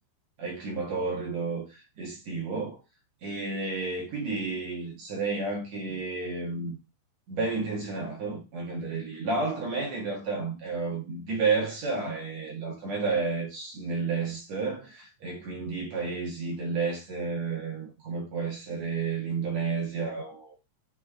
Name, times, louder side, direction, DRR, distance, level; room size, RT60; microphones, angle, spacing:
voice 1, 0.4-2.8 3.2-6.8 7.3-20.6, right 4 dB, 60° right, 1.9 m, -31 dB
9.3 x 3.4 x 3.6 m
omnidirectional pair, 5.5 m